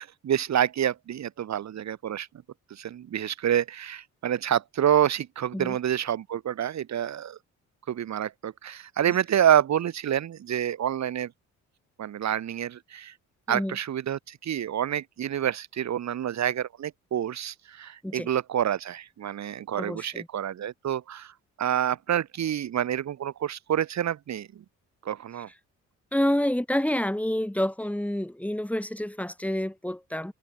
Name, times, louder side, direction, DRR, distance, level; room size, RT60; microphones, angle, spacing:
voice 1, 0.0-2.3 2.7-7.4 7.9-11.3 12.0-13.1 13.5-21.3 21.6-24.5 25.1-25.5, right 10 dB, 65° right, 3.4 m, -28 dB
voice 2, 19.8-20.3 26.1-30.3, left 1 dB, 5° left, 7.5 m, -28 dB
cardioid pair, 90°, 30 cm